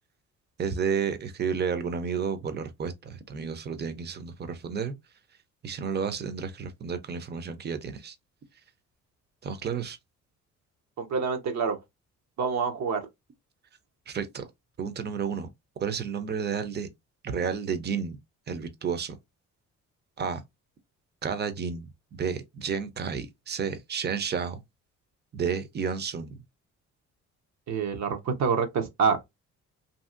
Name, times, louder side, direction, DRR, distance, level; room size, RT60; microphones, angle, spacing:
voice 1, 0.6-4.9 5.6-8.2 9.4-10.0 14.1-14.5 14.8-15.5 15.8-16.9 17.2-18.2 18.5-19.2 20.2-20.4 21.2-24.6 25.3-26.4, right 6 dB, 35° right, 0.6 m, -31 dB
voice 2, 11.0-11.8 12.4-13.0 27.7-29.3, right 5 dB, 65° right, 0.7 m, -27 dB
2.8 x 2.7 x 2.5 m
cardioid pair, 90°, 30 cm